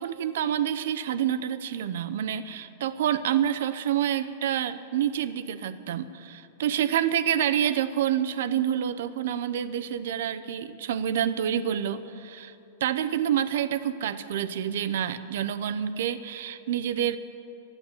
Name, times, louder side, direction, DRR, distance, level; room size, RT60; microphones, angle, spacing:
voice 1, 0.0-12.5 12.8-17.2, right 10 dB, 70° right, 12 dB, 0.7 m, -28 dB
13.5 x 9.0 x 10.0 m, 2.8 s
supercardioid pair, 145°, 0 cm